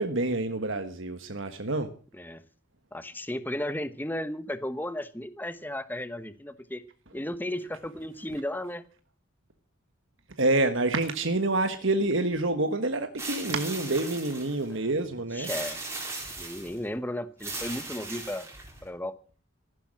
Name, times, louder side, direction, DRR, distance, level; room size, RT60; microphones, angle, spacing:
voice 1, 0.0-1.9 10.4-15.5, right 2 dB, 65° right, 1.4 m, -27 dB
voice 2, 2.9-6.8 7.1-8.8 15.3-15.8 16.4-18.5 18.8-19.1, left 1 dB, 10° left, 1.0 m, -34 dB
sound 1, 13.2-14.7 15.4-16.8 17.4-18.8, right 3 dB, 15° right, 4.2 m, -38 dB
15.0 x 11.5 x 7.5 m
head